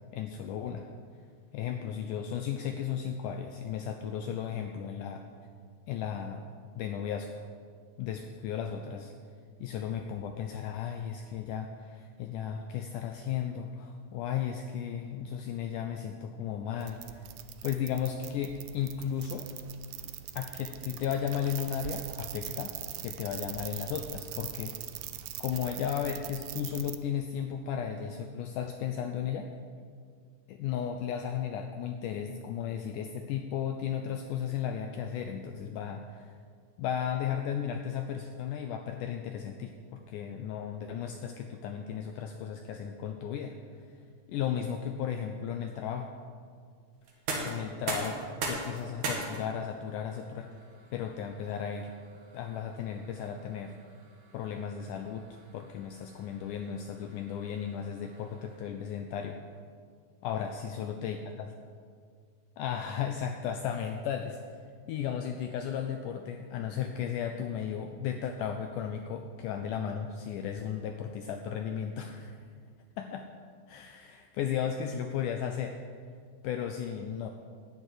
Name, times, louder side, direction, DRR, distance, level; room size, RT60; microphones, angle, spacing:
voice 1, 0.1-0.9 1.5-5.2 5.9-6.4 6.8-7.4 8.0-9.1 9.6-17.2 17.6-19.5 20.4-22.7 23.0-24.8 25.4-29.5 30.5-36.3 36.8-43.9 44.3-46.1 47.4-50.5 50.9-51.9 52.3-53.7 54.3-55.3 55.5-59.4 60.2-61.5 62.6-64.4 64.9-72.4 73.0-73.3 73.7-75.8 76.4-77.3, left 8 dB, 80° left, 5 dB, 1.9 m, -35 dB
sound 1, 16.8-27.0, right 13 dB, 90° right, 1.7 m, -42 dB
sound 2, 47.0-58.8, right 2 dB, 60° right, 2.9 m, -41 dB
12.0 x 6.5 x 9.2 m, 2.1 s
omnidirectional pair, 4.2 m